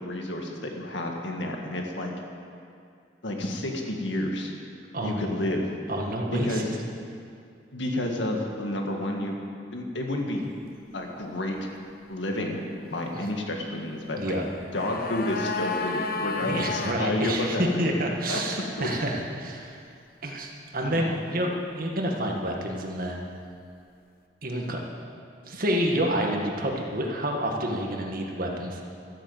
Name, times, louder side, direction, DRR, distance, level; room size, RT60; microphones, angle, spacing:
voice 1, 0.0-2.1 3.2-4.5 5.0-5.6 6.3-6.7 7.7-9.4 9.7-10.5 10.9-11.6 12.1-12.6 12.9-14.4 14.7-17.8 18.3-18.4 18.8-18.9 20.8-21.5, left 1 dB, 75° left, 1 dB, 1.9 m, -30 dB
voice 2, 4.9-5.2 5.9-6.7 13.1-13.3 14.2-14.4 16.4-19.8 20.2-23.2 24.4-24.8 25.5-28.8, equal, 50° right, 0 dB, 1.8 m, -28 dB
sound 1, 14.4-17.0 17.3-17.4, left 4 dB, 50° left, 0.9 m, -31 dB
13.5 x 8.8 x 8.1 m, 2.5 s
head